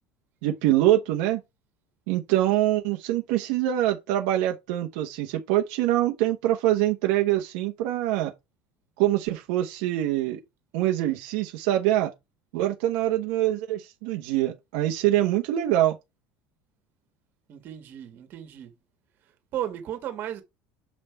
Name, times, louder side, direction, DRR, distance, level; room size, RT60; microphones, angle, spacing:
voice 1, 0.4-1.4 2.1-8.3 9.0-10.4 10.7-12.1 12.5-16.0, right 14 dB, 70° right, 1.0 m, -24 dB
voice 2, 17.5-18.7 19.2-20.4, right 11 dB, 40° right, 1.8 m, -35 dB
7.3 x 5.5 x 3.5 m
cardioid pair, 170°, 5 cm